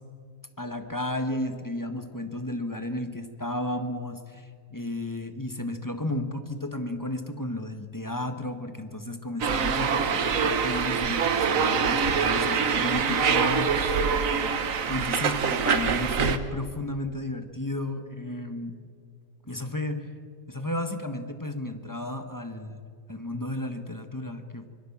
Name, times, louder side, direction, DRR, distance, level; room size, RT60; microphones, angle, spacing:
voice 1, 0.6-14.2 14.9-18.8 19.4-20.1 20.5-24.7, left 1 dB, 15° left, 7 dB, 1.3 m, -33 dB
sound 1, 9.4-16.4, right 6 dB, 60° right, 1.5 m, -25 dB
25.0 x 21.5 x 7.3 m, 2.2 s
omnidirectional pair, 1.7 m